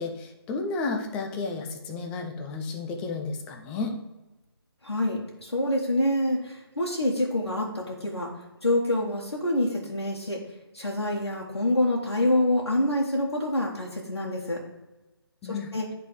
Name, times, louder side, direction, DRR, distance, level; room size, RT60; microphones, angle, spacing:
voice 1, 0.0-3.9 15.4-15.7, left 3 dB, 5° left, 3 dB, 0.3 m, -32 dB
voice 2, 4.8-8.3 8.6-10.4 10.7-14.6 15.5-15.9, left 1 dB, 85° left, -3 dB, 1.4 m, -26 dB
11.0 x 3.7 x 3.1 m, 1.1 s
figure-of-eight pair, 150°, 13 cm